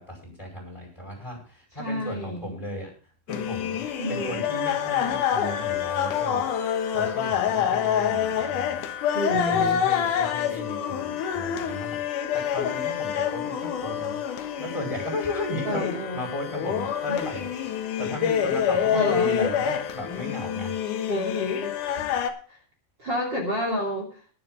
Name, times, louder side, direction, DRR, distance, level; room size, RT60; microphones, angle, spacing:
voice 1, 0.0-2.9 3.3-6.5 6.9-8.8 9.3-14.2 14.6-15.9 16.1-21.1, left 1 dB, 5° left, -2 dB, 4.4 m, -35 dB
voice 2, 1.8-2.6 4.0-4.4 9.1-9.8 15.6-16.2 18.9-19.5 21.1-21.8 22.5-22.6 23.0-24.2, equal, 30° right, 1 dB, 2.7 m, -29 dB
sound 1, 3.3-22.3, left 9 dB, 70° left, 2.0 m, -27 dB
21.0 x 7.2 x 3.8 m, 0.42 s
omnidirectional pair, 5.2 m